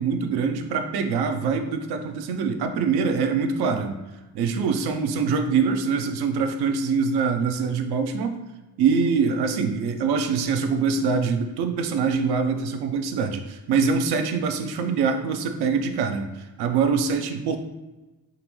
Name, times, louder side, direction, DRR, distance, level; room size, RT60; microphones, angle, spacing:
voice 1, 0.0-3.9 4.3-8.4 8.8-17.6, right 5 dB, 85° right, 6 dB, 0.6 m, -24 dB
3.8 x 3.0 x 3.0 m, 1.1 s
cardioid pair, 115°, 38 cm